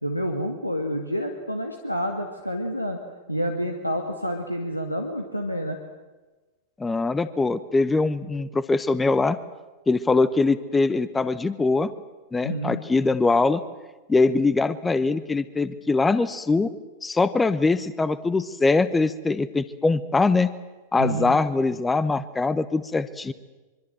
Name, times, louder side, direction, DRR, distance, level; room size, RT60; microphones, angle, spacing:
voice 1, 0.0-3.0 3.3-5.8 12.4-12.8 21.0-21.4, equal, 90° left, 4 dB, 2.0 m, -28 dB
voice 2, 6.8-9.4 9.9-11.9 12.3-13.6 14.1-16.7 17.0-20.5 20.9-23.3, left 3 dB, 10° left, 15 dB, 1.0 m, -22 dB
25.0 x 24.5 x 7.7 m, 1.2 s
figure-of-eight pair, 90°, 0 cm